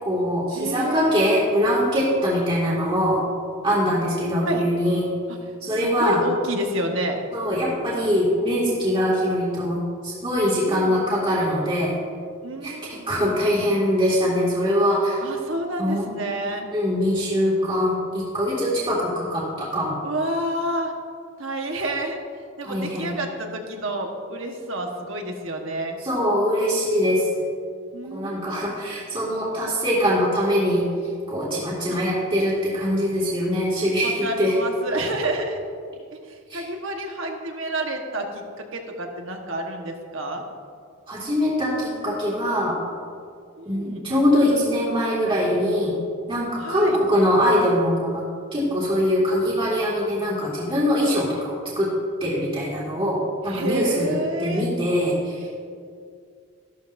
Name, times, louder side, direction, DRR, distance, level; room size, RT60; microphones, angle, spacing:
voice 1, 0.0-3.2 3.6-5.1 5.6-6.2 7.3-11.9 12.6-15.2 15.8-16.0 16.7-19.9 22.7-23.1 26.0-27.3 28.1-30.8 31.3-34.5 36.5-36.6 41.1-42.8 43.7-45.9 46.3-48.2 48.5-51.9 52.2-54.1 54.4-55.5, equal, 25° right, -6 dB, 2.1 m, -22 dB
voice 2, 0.5-1.2 4.4-4.7 5.7-7.2 10.7-11.0 12.4-13.8 15.2-16.7 20.0-20.9 21.4-22.2 22.6-26.0 27.9-28.7 31.9-32.0 34.0-35.6 36.1-40.4 43.6-44.1 46.6-47.0 53.5-54.7, right 1 dB, 60° right, 2 dB, 1.3 m, -29 dB
14.0 x 12.0 x 2.6 m, 2.2 s
head